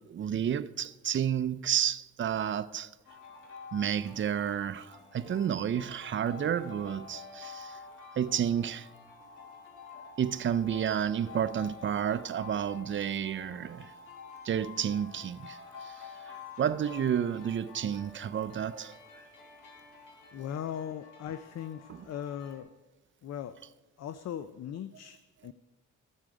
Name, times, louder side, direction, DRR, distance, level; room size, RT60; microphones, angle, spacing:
voice 1, 0.0-2.9 3.7-7.8 8.2-8.9 10.2-13.9 14.4-16.0 16.6-19.0, right 9 dB, 40° right, 0.6 m, -31 dB
sound 1, 3.1-22.6, left 5 dB, 85° left, 2.1 m, -49 dB
voice 2, 20.3-22.8 23.2-23.6 24.0-25.5, left 9 dB, 60° left, 0.5 m, -39 dB
14.5 x 7.5 x 5.0 m
cardioid pair, 80°, 30 cm